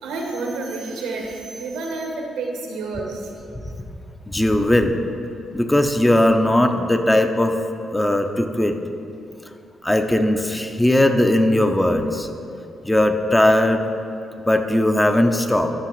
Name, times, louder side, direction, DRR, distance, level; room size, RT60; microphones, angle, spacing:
voice 1, 0.0-3.3, right 3 dB, 90° right, 1 dB, 1.0 m, -29 dB
voice 2, 4.3-5.0 5.5-7.5 7.9-8.8 9.8-12.3 12.8-13.8 14.5-15.7, left 1 dB, 10° left, 6 dB, 0.5 m, -18 dB
11.5 x 5.6 x 3.1 m, 2.7 s
supercardioid pair, 65°, 0 cm